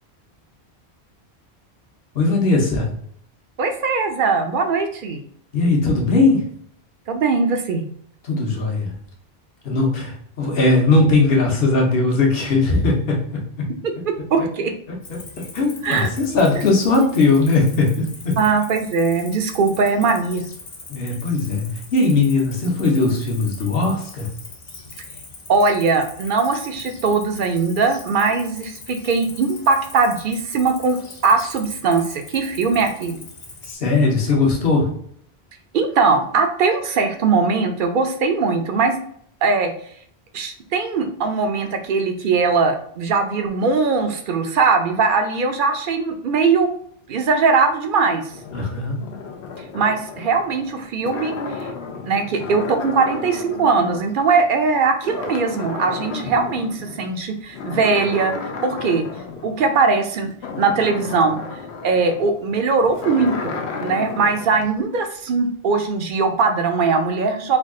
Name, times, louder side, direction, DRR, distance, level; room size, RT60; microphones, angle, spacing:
voice 1, 2.1-2.9 5.5-6.5 8.2-9.0 9.6-13.7 14.9-18.4 20.9-24.3 33.6-34.9 48.5-49.0, left 3 dB, 65° left, -1 dB, 1.1 m, -19 dB
voice 2, 3.6-5.2 7.1-7.8 14.3-14.7 15.8-16.1 18.4-20.4 25.5-31.0 31.2-33.2 35.7-39.0 39.4-39.7 40.3-46.7 47.1-48.2 49.7-51.7 52.0-59.0 59.4-61.4 61.8-67.6, right 4 dB, 60° right, 5 dB, 0.6 m, -20 dB
Cricket, 15.0-33.7, left 3 dB, 45° left, 0.8 m, -41 dB
sound 1, 48.3-54.7 55.0-57.1 57.5-64.6, left 4 dB, 85° left, 0.9 m, -33 dB
3.5 x 2.3 x 3.6 m, 0.64 s
omnidirectional pair, 1.1 m